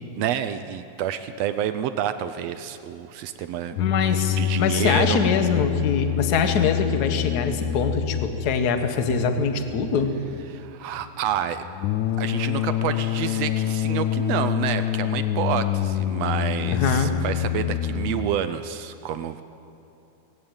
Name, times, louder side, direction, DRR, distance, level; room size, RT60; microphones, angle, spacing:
voice 1, 0.2-3.7 4.4-5.2 10.5-11.7 12.2-19.4, right 10 dB, 75° right, 11 dB, 1.5 m, -29 dB
voice 2, 3.7-10.2 16.7-17.1, left 5 dB, 60° left, 8 dB, 1.0 m, -23 dB
sound 1, 3.8-18.3, left 11 dB, 80° left, 2.1 m, -27 dB
19.0 x 16.5 x 9.0 m, 2.9 s
omnidirectional pair, 3.6 m